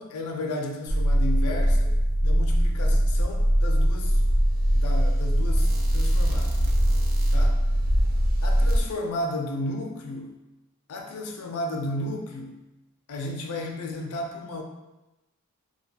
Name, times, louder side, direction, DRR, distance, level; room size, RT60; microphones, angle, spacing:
voice 1, 0.0-1.9 2.2-4.2 4.7-6.6 7.3-7.6 8.4-10.4 10.9-12.6 13.1-14.6, left 1 dB, 80° left, 3 dB, 0.4 m, -33 dB
sound 1, 0.9-8.8, equal, 45° right, 0.3 m, -21 dB
2.3 x 2.3 x 2.7 m, 0.99 s
head